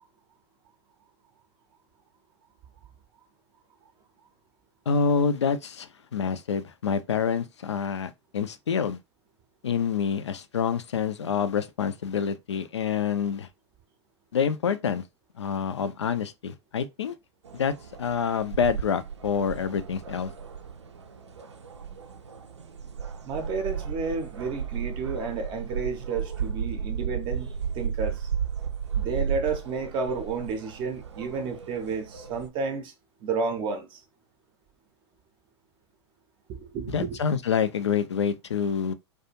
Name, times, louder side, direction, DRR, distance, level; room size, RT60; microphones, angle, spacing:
voice 1, 4.9-9.0 9.6-13.5 14.3-15.0 15.4-17.1 17.5-17.7 18.0-20.3 36.9-38.9, left 6 dB, 80° left, 0.4 m, -27 dB
sound 1, 17.5-32.5, right 7 dB, 80° right, 0.4 m, -34 dB
voice 2, 23.2-28.3 28.9-32.9 33.2-34.0 36.5-37.2, right 4 dB, 35° right, 0.5 m, -31 dB
2.4 x 2.2 x 2.8 m
figure-of-eight pair, 95°, 15 cm